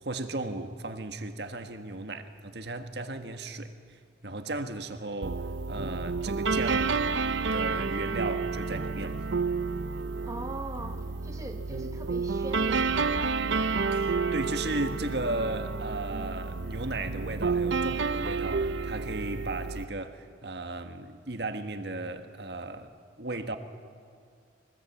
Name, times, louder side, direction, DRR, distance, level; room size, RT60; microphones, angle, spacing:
voice 1, 0.0-7.0 7.5-9.2 13.9-22.9 23.2-23.6, right 2 dB, 65° right, 1.6 m, -35 dB
sound 1, 5.2-19.8, right 4 dB, 80° right, 0.7 m, -30 dB
voice 2, 10.2-13.4, right 1 dB, 15° right, 0.8 m, -41 dB
24.0 x 20.5 x 8.4 m
head